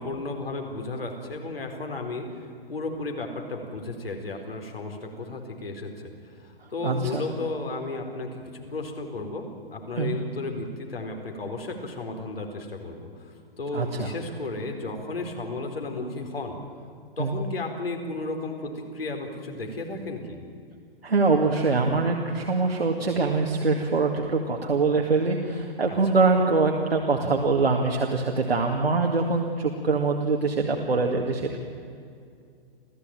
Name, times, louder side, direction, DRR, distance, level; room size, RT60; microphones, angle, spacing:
voice 1, 0.0-2.4 2.7-16.6 17.2-20.4 25.9-26.0, left 2 dB, 75° left, 3 dB, 4.5 m, -34 dB
voice 2, 6.8-7.2 10.0-10.2 13.7-14.1 17.2-17.3 21.0-31.6, right 3 dB, 80° right, 1 dB, 2.3 m, -24 dB
28.5 x 15.5 x 9.1 m, 2.4 s
figure-of-eight pair, 125°, 30 cm